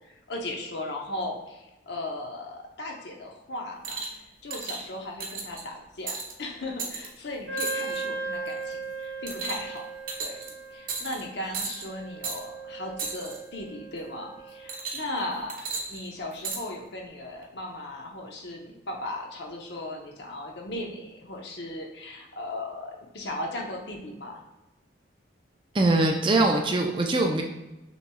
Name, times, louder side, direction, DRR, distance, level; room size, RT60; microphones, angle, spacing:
voice 1, 0.0-9.9 10.2-10.4 10.7-15.6 15.9-24.4, left 1 dB, 65° left, 1 dB, 0.8 m, -37 dB
sound 1, 3.8-4.2 4.5-4.8 5.2-5.6 6.1-6.3 6.8-7.1 7.6-8.0 8.5-8.7 9.3-9.8 10.1-10.5 10.9-11.2 11.5-11.9 12.2-12.4 13.0-13.4 14.7-15.2 15.5-16.6 17.4-17.5, right 4 dB, 45° right, 0.8 m, -34 dB
Wind instrument woodwind instrument, 7.5-14.8, right 3 dB, 85° right, 0.7 m, -37 dB
voice 2, 25.7-27.4, right 2 dB, 25° right, 3 dB, 0.4 m, -22 dB
6.0 x 3.0 x 2.3 m, 1.0 s
head